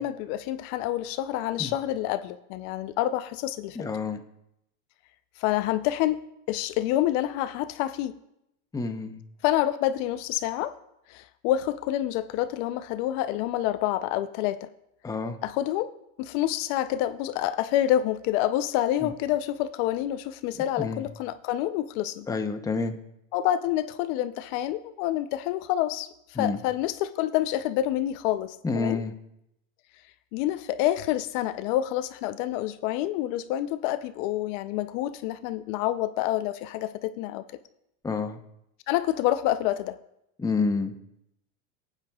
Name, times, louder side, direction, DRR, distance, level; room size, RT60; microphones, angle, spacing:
voice 1, 0.0-3.9 5.4-6.2 6.5-8.1 9.4-10.8 11.1-14.7 15.4-15.9 16.2-22.3 23.3-29.0 30.3-37.4 38.9-40.0, left 13 dB, 60° left, 12 dB, 0.7 m, -27 dB
voice 2, 3.8-4.2 8.7-9.2 15.0-15.4 19.0-19.1 20.8-21.0 22.3-23.0 26.4-26.6 28.6-29.1 38.0-38.4 40.4-40.9, left 4 dB, 10° left, 7 dB, 0.7 m, -28 dB
24.0 x 9.0 x 2.3 m, 0.82 s
supercardioid pair, 115°, 41 cm